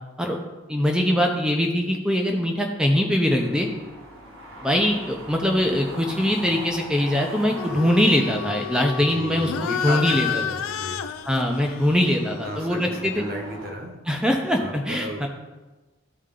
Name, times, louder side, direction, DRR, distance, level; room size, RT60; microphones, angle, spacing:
voice 1, 0.7-3.7 4.6-10.3 11.3-13.2 14.1-15.3, equal, 5° right, 1 dB, 0.6 m, -22 dB
sound 1, 3.2-13.7, equal, 75° right, 1.7 m, -42 dB
sound 2, 7.6-13.4, left 8 dB, 80° left, 0.4 m, -32 dB
voice 2, 9.0-11.0 12.4-14.0 14.6-15.3, right 1 dB, 45° right, 2 dB, 1.1 m, -33 dB
13.0 x 4.4 x 3.8 m, 1.2 s
head